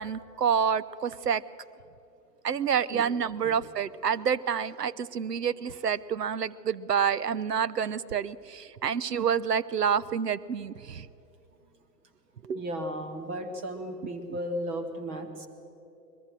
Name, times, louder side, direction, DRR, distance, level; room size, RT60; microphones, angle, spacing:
voice 1, 0.0-1.4 2.4-11.1 12.4-12.6, right 7 dB, 70° right, 17 dB, 0.8 m, -28 dB
voice 2, 12.5-15.5, equal, 10° right, 6 dB, 0.4 m, -35 dB
22.0 x 21.5 x 6.5 m, 2.8 s
figure-of-eight pair, 110°, 50 cm